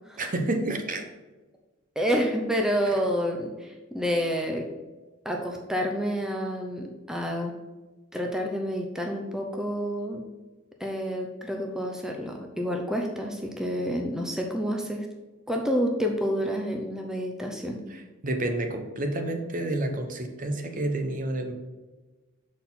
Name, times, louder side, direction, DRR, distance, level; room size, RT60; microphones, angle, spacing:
voice 1, 0.2-1.0 2.9-3.0 17.9-21.5, right 1 dB, 40° right, 5 dB, 0.8 m, -29 dB
voice 2, 2.0-4.7 5.2-7.5 8.1-10.2 10.8-15.1 15.5-17.8, equal, 5° right, 1 dB, 0.6 m, -29 dB
6.4 x 4.2 x 5.6 m, 1.2 s
head